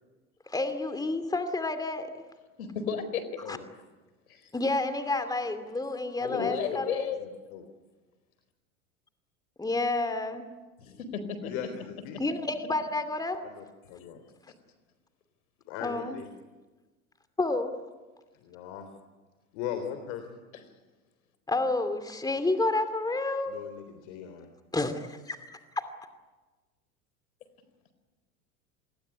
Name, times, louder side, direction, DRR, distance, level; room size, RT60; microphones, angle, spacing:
voice 1, 0.5-2.1 3.5-3.6 4.5-7.1 9.6-10.5 12.2-13.4 15.8-16.2 17.4-17.7 21.5-23.6 24.7-25.4 25.8-25.9, left 2 dB, 10° left, 8 dB, 2.6 m, -30 dB
voice 2, 2.6-3.2 4.3-4.5 6.2-7.2 10.8-11.5, left 6 dB, 75° left, 11 dB, 4.5 m, -33 dB
voice 3, 6.2-6.8 7.2-7.6 11.4-12.2 13.4-14.2 15.7-16.3 18.3-18.9 19.5-20.4 23.5-24.5, left 8 dB, 60° left, 8 dB, 3.7 m, -39 dB
27.5 x 21.5 x 9.9 m, 1.2 s
hypercardioid pair, 85°, 43 cm